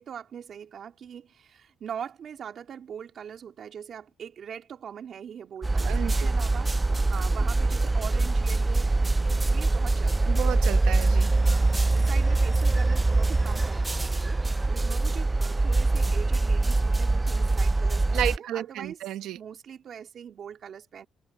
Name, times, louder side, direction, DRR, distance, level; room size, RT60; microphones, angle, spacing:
voice 1, 0.0-8.9 9.4-10.5 11.4-19.0 19.4-21.1, right 8 dB, 50° right, 3.3 m, -42 dB
sound 1, 5.6-18.4, right 2 dB, 15° right, 0.4 m, -23 dB
voice 2, 5.8-6.3 10.3-11.3 18.1-19.4, right 12 dB, 80° right, 1.1 m, -32 dB
cardioid pair, 125°, 0 cm